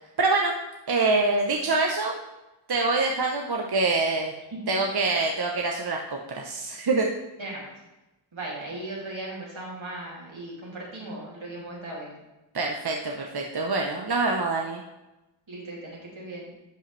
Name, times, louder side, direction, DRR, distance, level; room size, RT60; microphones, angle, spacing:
voice 1, 0.2-0.6 0.9-2.1 2.7-4.3 4.7-7.1 12.5-14.8, right 3 dB, 55° right, 0 dB, 0.8 m, -25 dB
voice 2, 7.4-7.7 8.3-12.1 15.5-16.5, right 2 dB, 80° right, -4 dB, 2.6 m, -37 dB
11.0 x 5.5 x 3.2 m, 1.0 s
wide cardioid pair, 45°, 47 cm